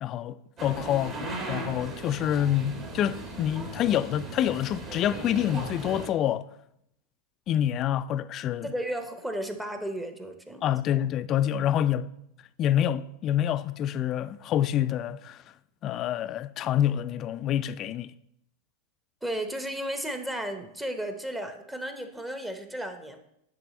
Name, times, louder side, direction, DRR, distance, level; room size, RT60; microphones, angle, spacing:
voice 1, 0.0-6.5 7.5-8.7 10.6-12.1 12.6-15.4 15.8-18.1, left 11 dB, 40° left, 0.3 m, -27 dB
sound 1, 0.6-6.1, right 3 dB, 35° right, 1.6 m, -38 dB
voice 2, 8.6-10.6 11.6-11.7 19.2-23.2, right 1 dB, 10° right, 0.9 m, -34 dB
10.0 x 3.4 x 4.2 m
hypercardioid pair, 95°, 0 cm